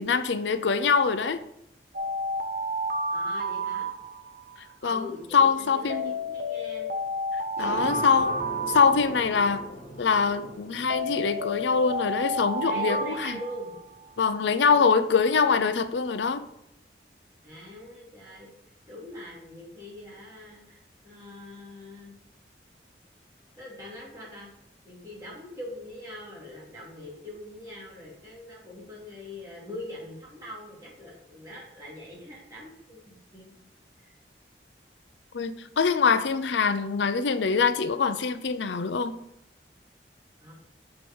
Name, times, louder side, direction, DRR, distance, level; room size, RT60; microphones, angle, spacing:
voice 1, 0.0-1.4 4.8-5.1 5.3-6.1 7.6-8.4 8.7-9.6 10.0-13.3 14.2-16.5 35.3-39.2, left 5 dB, 90° left, 11 dB, 0.5 m, -24 dB
Alarm, 1.9-4.6 5.9-9.6 10.9-14.1, equal, 50° right, 0.7 m, -31 dB
voice 2, 3.1-3.9 4.8-6.9 12.6-13.7 14.7-14.8 17.4-18.5 18.9-22.1 23.6-24.5 24.8-33.5 34.0-34.2 40.4-40.5, left 1 dB, 20° right, -5 dB, 2.7 m, -42 dB
sound 1, 7.6-14.8, right 1 dB, 40° left, 3.1 m, -42 dB
6.1 x 4.8 x 5.3 m, 0.78 s
head